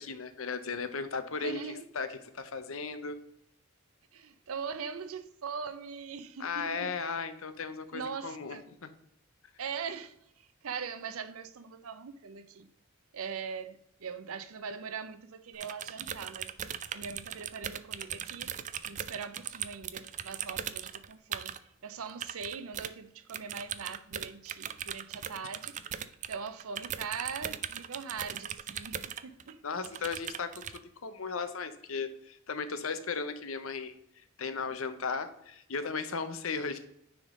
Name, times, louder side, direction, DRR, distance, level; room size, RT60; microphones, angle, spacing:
voice 1, 0.0-3.2 6.4-8.9 29.6-36.8, left 5 dB, 75° left, 0.8 m, -36 dB
voice 2, 1.4-1.8 4.1-6.9 7.9-8.6 9.6-12.7 13.1-16.5 16.9-18.5 18.8-21.6 21.8-25.8 26.3-29.6, right 6 dB, 80° right, 0.6 m, -41 dB
sound 1, 15.5-21.6 22.1-22.9 23.3-29.5 29.8-30.8, right 9 dB, 35° right, 0.3 m, -39 dB
9.8 x 3.7 x 3.7 m
head